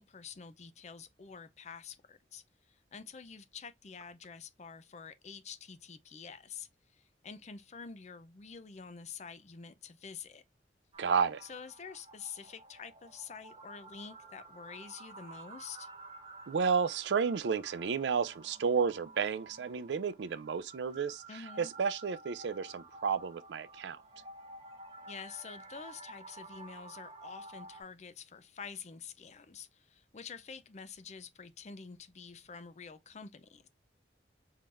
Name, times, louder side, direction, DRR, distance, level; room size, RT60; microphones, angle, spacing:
voice 1, 0.0-10.4 11.4-15.9 21.3-21.7 25.1-33.7, left 6 dB, 40° left, 0.5 m, -48 dB
sound 1, 10.9-27.8, right 2 dB, 30° right, 0.8 m, -52 dB
voice 2, 11.0-11.4 16.5-21.2 21.6-24.0, right 6 dB, 80° right, 0.4 m, -32 dB
4.5 x 3.7 x 2.4 m
head